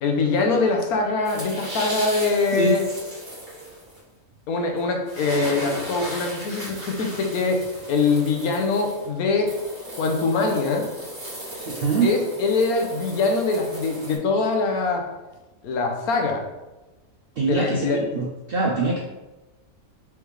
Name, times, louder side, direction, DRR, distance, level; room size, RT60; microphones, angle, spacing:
voice 1, 0.0-2.8 4.5-7.6 7.9-9.5 10.0-10.9 12.0-15.0 15.6-16.4 17.4-18.0, left 3 dB, 85° left, 2 dB, 1.2 m, -23 dB
sound 1, 1.2-4.0 4.8-4.9 5.1-14.2, equal, 40° right, 1.5 m, -36 dB
voice 2, 11.8-12.1 17.4-19.0, right 4 dB, 70° right, 0 dB, 0.5 m, -23 dB
4.7 x 3.3 x 3.1 m, 1.1 s
omnidirectional pair, 1.5 m